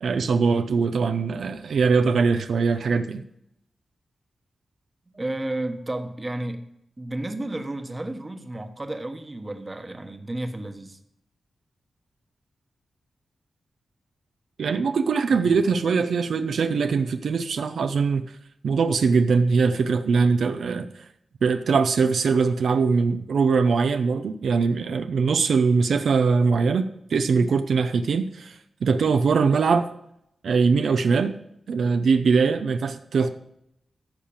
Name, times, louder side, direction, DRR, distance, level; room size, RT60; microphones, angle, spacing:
voice 1, 0.0-3.2 14.6-18.2 18.6-20.9 21.4-29.9 30.4-31.3 31.7-33.3, right 5 dB, 80° right, 8 dB, 0.6 m, -22 dB
voice 2, 5.1-6.6 7.0-11.0 15.3-15.6, right 1 dB, 25° right, 6 dB, 1.1 m, -32 dB
13.5 x 5.7 x 7.2 m, 0.80 s
wide cardioid pair, 120°, 0 cm